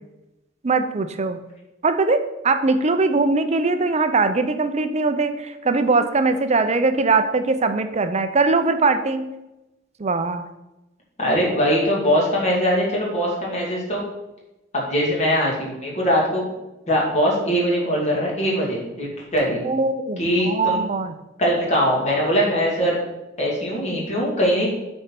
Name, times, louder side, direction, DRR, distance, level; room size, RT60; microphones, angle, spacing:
voice 1, 0.6-1.4 1.8-9.2 10.0-10.4 19.6-21.1, right 3 dB, 35° right, 9 dB, 0.6 m, -21 dB
voice 2, 11.2-14.0 14.7-16.5 16.9-19.6 20.2-20.8 21.4-23.0 23.4-24.7, equal, 35° left, -4 dB, 2.7 m, -21 dB
8.6 x 4.5 x 5.9 m, 0.97 s
head